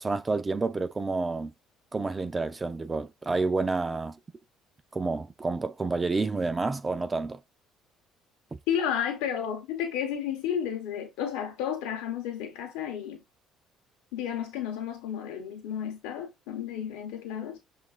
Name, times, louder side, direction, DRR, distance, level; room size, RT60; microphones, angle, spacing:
voice 1, 0.0-1.5 1.9-4.2 4.9-7.4, right 3 dB, 25° right, 0.4 m, -29 dB
voice 2, 8.7-13.2 14.1-17.6, left 9 dB, 85° left, 0.8 m, -32 dB
5.7 x 2.5 x 2.4 m
supercardioid pair, 85°, 0 cm